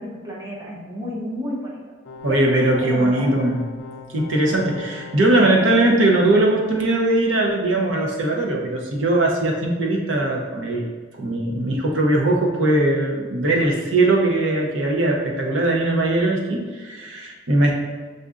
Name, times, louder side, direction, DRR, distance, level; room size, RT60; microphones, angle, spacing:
voice 1, 0.0-1.8 2.3-3.4, equal, 20° right, -5 dB, 0.7 m, -32 dB
sound 1, 2.0-5.9, left 4 dB, 70° left, 0.5 m, -40 dB
voice 2, 2.2-3.6 4.1-10.9 11.2-17.7, right 2 dB, 80° right, -1 dB, 0.7 m, -20 dB
6.5 x 2.5 x 2.4 m, 1.4 s
head